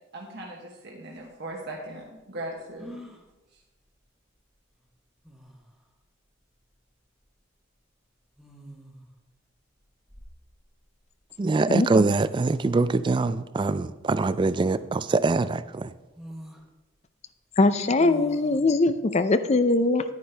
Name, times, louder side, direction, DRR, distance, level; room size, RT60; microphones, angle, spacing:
voice 1, 0.1-3.0 3.5-3.6, right 1 dB, 60° right, 1.2 m, -39 dB
sound 1, 1.2-1.3 2.8-3.3 4.8-4.9 5.2-5.7 7.1-7.3 8.4-9.1 9.8-10.8 11.5-11.6 11.7-12.6 14.2-14.8 15.3-15.4 16.1-16.6 18.0-18.6, equal, ahead, 1.1 m, -45 dB
voice 2, 11.4-15.9, right 3 dB, 25° right, 0.3 m, -23 dB
voice 3, 17.6-20.0, left 2 dB, 35° left, 0.5 m, -21 dB
10.5 x 9.5 x 3.4 m
head